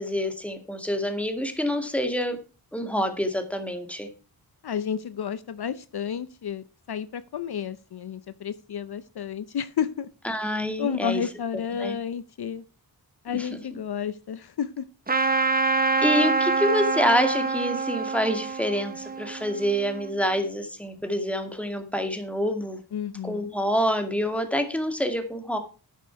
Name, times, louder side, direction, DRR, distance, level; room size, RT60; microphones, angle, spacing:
voice 1, 0.0-2.4 2.7-4.1 10.2-11.2 11.5-12.0 13.4-13.5 16.0-22.8 23.2-25.6, equal, 5° left, 6 dB, 2.2 m, -27 dB
voice 2, 4.6-10.1 10.8-12.6 13.2-14.8 22.9-23.5, left 8 dB, 70° left, 14 dB, 0.7 m, -31 dB
Trumpet, 15.1-20.1, right 4 dB, 20° right, 0.8 m, -26 dB
11.0 x 9.2 x 4.7 m, 0.34 s
wide cardioid pair, 100°, 40 cm